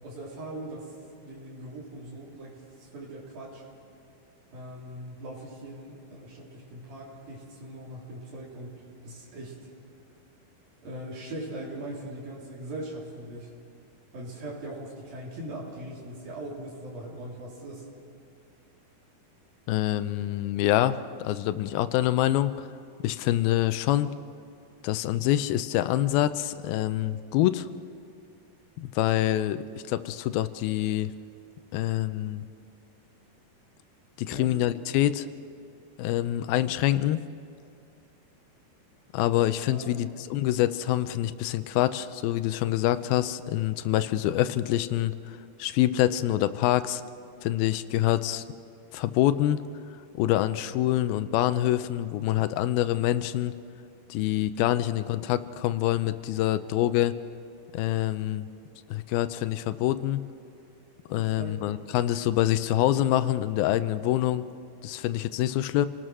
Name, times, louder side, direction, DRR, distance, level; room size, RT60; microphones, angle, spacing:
voice 1, 0.0-3.6 4.5-9.6 10.8-13.5 14.1-17.9 34.3-34.6 39.7-40.0 61.1-61.5, right 1 dB, 75° right, -4 dB, 5.2 m, -40 dB
voice 2, 19.7-22.7 23.0-24.1 24.8-27.7 28.8-31.1 31.7-32.4 34.2-35.3 36.0-37.2 39.1-47.0 47.4-48.4 48.9-49.6 50.1-53.5 54.1-57.1 57.7-58.5 58.9-60.2 61.1-64.4 64.8-65.9, left 13 dB, 90° left, 12 dB, 2.5 m, -26 dB
29.5 x 19.0 x 6.2 m, 2.5 s
omnidirectional pair, 4.2 m